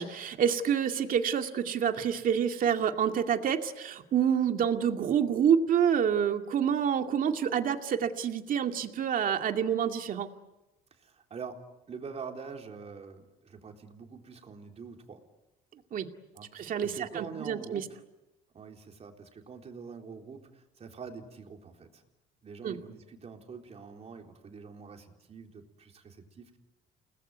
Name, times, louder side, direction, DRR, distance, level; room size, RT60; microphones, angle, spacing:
voice 1, 0.0-10.3 15.9-16.1 16.5-17.8 22.6-22.8, right 8 dB, 55° right, 6 dB, 2.3 m, -28 dB
voice 2, 11.0-15.2 16.3-18.0 18.5-22.0 22.4-26.6, right 5 dB, 40° right, 3 dB, 3.9 m, -45 dB
29.5 x 20.0 x 9.4 m, 1.0 s
cardioid pair, 110°, 17 cm